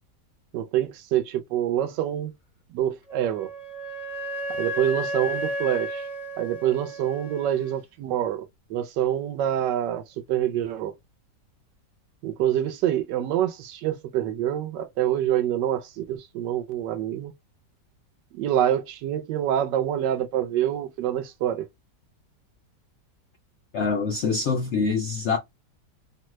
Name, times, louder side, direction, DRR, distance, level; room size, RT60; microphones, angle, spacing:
voice 1, 0.5-2.3 2.7-3.5 4.6-6.0 6.4-8.4 8.7-10.0 10.3-10.9 12.2-17.3 18.3-21.7, right 11 dB, 85° right, 1.3 m, -26 dB
Wind instrument woodwind instrument, 3.1-7.7, equal, 35° left, 0.7 m, -33 dB
voice 2, 23.7-25.4, left 4 dB, 70° left, 0.6 m, -25 dB
3.0 x 2.2 x 3.0 m
omnidirectional pair, 1.9 m